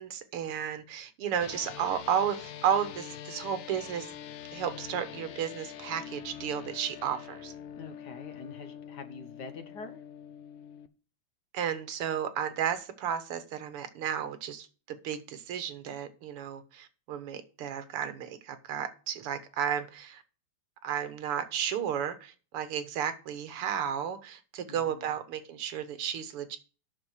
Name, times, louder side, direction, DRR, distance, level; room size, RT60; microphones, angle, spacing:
voice 1, 0.0-4.1 4.5-7.5 11.5-20.2 20.8-26.6, right 8 dB, 85° right, 2.1 m, -33 dB
sound 1, 1.4-10.9, left 9 dB, 75° left, 1.5 m, -44 dB
voice 2, 7.7-10.0 24.7-25.1, left 5 dB, 55° left, 1.5 m, -45 dB
8.6 x 6.4 x 6.4 m
omnidirectional pair, 2.4 m